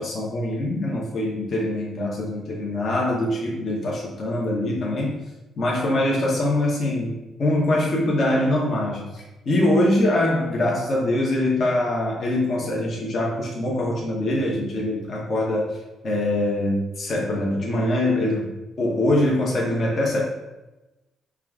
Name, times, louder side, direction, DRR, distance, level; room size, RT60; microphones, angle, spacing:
voice 1, 0.0-5.2 5.6-15.8 16.0-20.2, left 1 dB, 50° left, -3 dB, 0.8 m, -23 dB
4.5 x 2.3 x 3.5 m, 1.0 s
cardioid pair, 90°, 0 cm